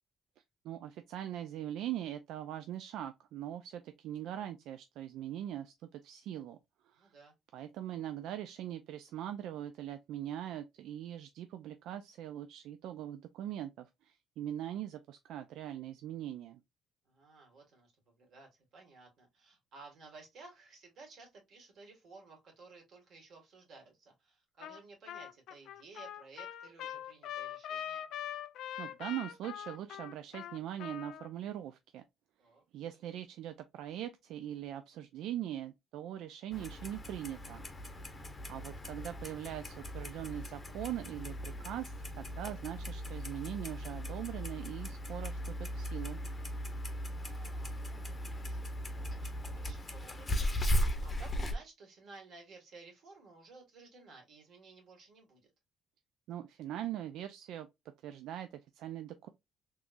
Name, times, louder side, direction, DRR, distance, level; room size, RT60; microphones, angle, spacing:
voice 1, 0.6-6.6 6.8-7.1 7.5-16.6 28.8-32.0 32.7-37.6 38.5-46.2 56.3-57.7 58.0-59.3, right 11 dB, 80° right, 0.4 m, -41 dB
voice 2, 7.0-7.3 17.0-28.1 32.4-32.6 37.9-38.4 46.9-55.5, right 3 dB, 55° right, 2.0 m, -56 dB
Trumpet, 24.6-24.8 25.1-31.3, left 10 dB, 75° left, 0.5 m, -42 dB
Clock, 36.5-51.5, equal, 20° left, 0.7 m, -38 dB
3.6 x 3.0 x 2.5 m
cardioid pair, 135°, 0 cm